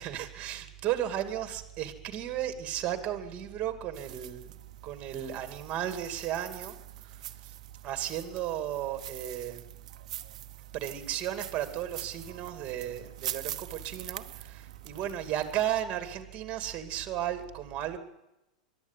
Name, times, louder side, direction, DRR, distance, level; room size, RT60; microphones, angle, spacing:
voice 1, 0.0-4.5 4.8-6.8 7.0-7.2 7.4-7.5 7.8-9.7 10.7-18.0, right 11 dB, 35° right, 7 dB, 2.5 m, -34 dB
sound 1, 3.9-15.8, right 12 dB, 65° right, 1.0 m, -44 dB
23.0 x 12.0 x 9.8 m, 0.92 s
hypercardioid pair, 100°, 4 cm